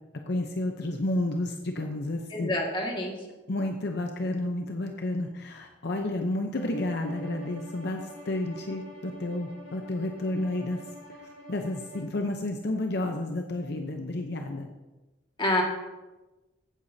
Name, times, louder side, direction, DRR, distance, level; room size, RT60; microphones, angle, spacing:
voice 1, 0.3-2.5 3.5-10.8 11.5-14.7, left 1 dB, 65° left, 4 dB, 0.8 m, -31 dB
voice 2, 2.3-3.1 15.4-15.6, left 1 dB, 25° left, -1 dB, 1.9 m, -27 dB
Bowed string instrument, 6.5-12.1, equal, 70° right, 2.1 m, -46 dB
15.0 x 8.2 x 2.8 m, 1.1 s
head